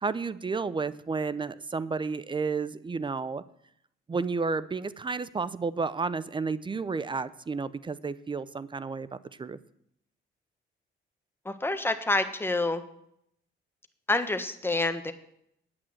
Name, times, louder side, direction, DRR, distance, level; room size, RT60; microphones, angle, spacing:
voice 1, 0.0-3.4 4.1-9.6, right 4 dB, 25° right, 16 dB, 0.5 m, -31 dB
voice 2, 11.4-12.8 14.1-15.1, left 2 dB, 10° left, 8 dB, 1.3 m, -27 dB
9.2 x 8.8 x 7.8 m, 0.74 s
cardioid pair, 90°, 20 cm